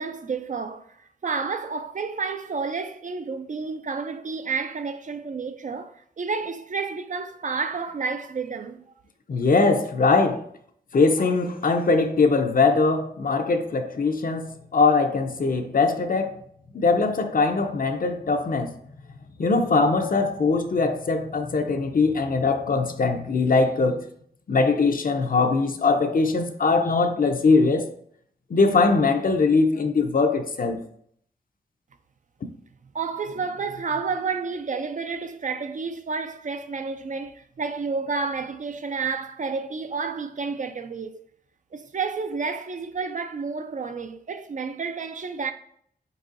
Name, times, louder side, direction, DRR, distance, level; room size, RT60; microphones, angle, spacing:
voice 1, 0.0-8.9 32.9-41.2 41.7-45.5, right 4 dB, 45° right, 0.4 m, -30 dB
voice 2, 9.3-10.4 10.9-16.3 16.7-18.7 19.4-24.0 24.5-27.9 28.5-30.8, left 3 dB, 55° left, 0.6 m, -21 dB
4.5 x 4.0 x 2.5 m
wide cardioid pair, 75°, 18 cm